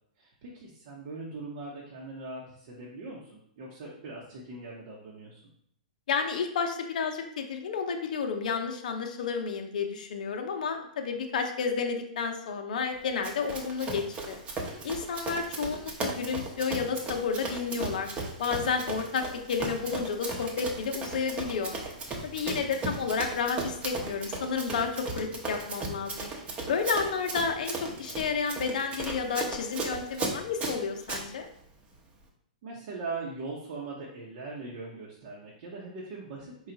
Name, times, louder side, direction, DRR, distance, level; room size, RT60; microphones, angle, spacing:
voice 1, 0.2-5.4 32.6-36.7, right 3 dB, 55° right, -3 dB, 0.9 m, -40 dB
voice 2, 6.1-14.3 14.8-18.1 18.4-21.7 22.2-26.3 26.7-31.5, left 5 dB, 70° left, 4 dB, 0.7 m, -31 dB
Run, 13.2-31.2, right 3 dB, 25° right, 0.8 m, -36 dB
4.6 x 2.4 x 3.9 m, 0.69 s
hypercardioid pair, 125°, 4 cm